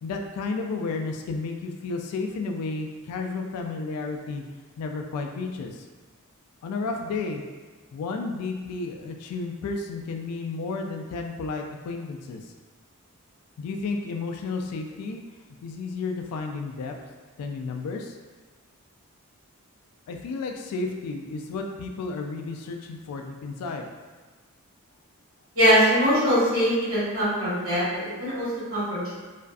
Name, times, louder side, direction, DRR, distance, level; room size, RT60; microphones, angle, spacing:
voice 1, 0.0-4.4 4.8-5.8 6.6-7.4 7.9-12.4 13.6-15.2 15.6-16.9 17.4-18.2 20.1-23.9, left 3 dB, 85° left, 8 dB, 0.3 m, -32 dB
voice 2, 25.5-29.2, equal, 65° right, -11 dB, 1.4 m, -22 dB
2.5 x 2.3 x 2.3 m, 1.4 s
head